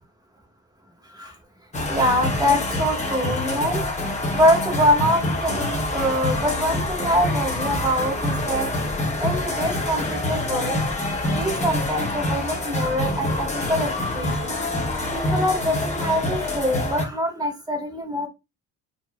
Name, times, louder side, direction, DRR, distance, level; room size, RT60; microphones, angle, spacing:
sound 1, 1.7-17.0, left 2 dB, 25° left, 1.0 m, -26 dB
voice 1, 1.9-8.7 9.2-10.8 11.2-14.6 15.1-18.3, equal, 15° right, 2 dB, 1.3 m, -24 dB
3.9 x 3.0 x 2.2 m, 0.24 s
cardioid pair, 90°, 30 cm